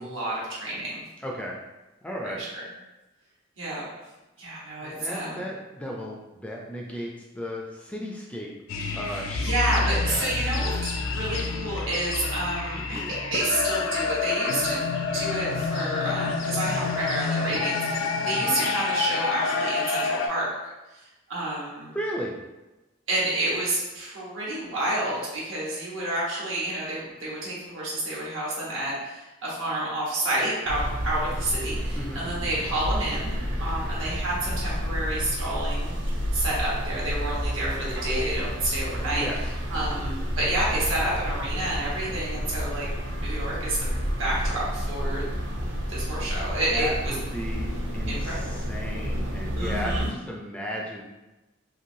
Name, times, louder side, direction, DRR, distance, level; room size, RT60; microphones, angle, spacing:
voice 1, 0.0-1.0 2.2-2.4 3.6-3.8 4.4-5.4 9.0-13.0 13.3-20.5 21.3-21.9 23.1-36.0 36.3-39.3 39.7-42.9 43.2-43.9 44.2-45.3 45.9-47.1 48.1-48.5 49.5-50.1, right 1 dB, 90° right, -6 dB, 1.2 m, -29 dB
voice 2, 1.2-1.6 2.0-2.4 4.8-8.5 8.9-9.5 9.8-10.3 12.9-13.2 18.5-18.6 21.9-22.4 32.0-32.5 39.2-39.4 39.7-40.0 46.7-51.0, equal, 5° left, -2 dB, 0.3 m, -35 dB
sound 1, 8.7-20.3, left 4 dB, 85° left, 0.4 m, -28 dB
sound 2, 30.7-50.1, equal, 60° right, 0.6 m, -30 dB
3.0 x 2.6 x 2.6 m, 1.0 s
head